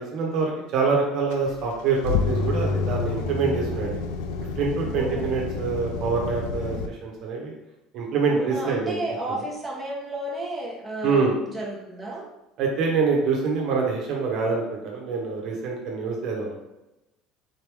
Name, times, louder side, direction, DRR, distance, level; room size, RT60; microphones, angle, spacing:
voice 1, 0.0-4.0 4.6-7.5 7.9-9.0 11.0-11.3 12.6-16.6, right 4 dB, 60° right, -1 dB, 1.0 m, -25 dB
sound 1, 1.3-6.9, left 4 dB, 85° left, 0.4 m, -28 dB
voice 2, 4.8-5.3 6.6-6.9 8.3-12.3, right 1 dB, 5° right, -4 dB, 1.2 m, -33 dB
4.1 x 3.0 x 3.4 m, 0.94 s
supercardioid pair, 115°, 0 cm